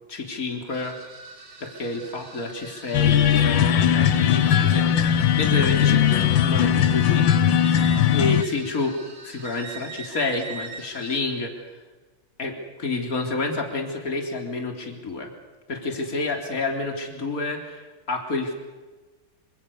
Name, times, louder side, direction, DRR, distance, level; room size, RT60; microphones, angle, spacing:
voice 1, 0.1-0.9 1.6-7.3 8.1-9.0 9.2-11.6 12.4-15.3 15.7-18.5, left 3 dB, 45° left, 3 dB, 4.0 m, -29 dB
sound 1, 0.7-11.2, right 4 dB, 60° right, 3.9 m, -43 dB
sound 2, 2.9-8.4, left 9 dB, 85° left, 1.8 m, -19 dB
27.5 x 26.5 x 6.9 m, 1.3 s
omnidirectional pair, 2.0 m